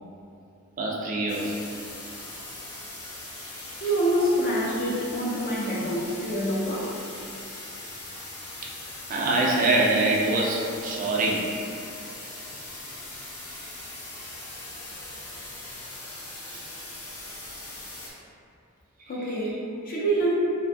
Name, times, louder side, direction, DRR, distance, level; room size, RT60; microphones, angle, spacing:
voice 1, 0.8-1.6 8.6-8.7 9.1-11.5 16.5-16.6 19.2-19.3, right 2 dB, 40° right, -3 dB, 0.4 m, -24 dB
sound 1, 1.3-18.1, left 2 dB, 85° left, 0.6 m, -40 dB
voice 2, 3.8-7.0 19.1-20.3, right 1 dB, 40° left, -6 dB, 0.5 m, -26 dB
2.5 x 2.1 x 2.6 m, 2.6 s
head